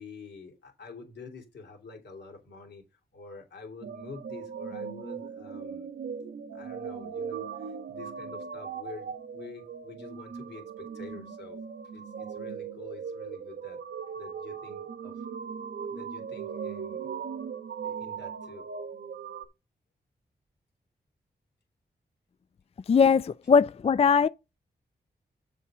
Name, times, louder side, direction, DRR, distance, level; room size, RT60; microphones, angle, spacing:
voice 1, 0.0-5.9 6.5-11.6 11.9-13.8 14.1-15.3 15.7-17.1 17.8-18.7, left 4 dB, 80° left, 2.9 m, -47 dB
sound 1, 3.8-19.5, right 6 dB, 75° right, 1.0 m, -39 dB
voice 2, 22.9-24.3, left 6 dB, 35° left, 0.4 m, -20 dB
7.1 x 5.5 x 4.9 m
cardioid pair, 45°, 17 cm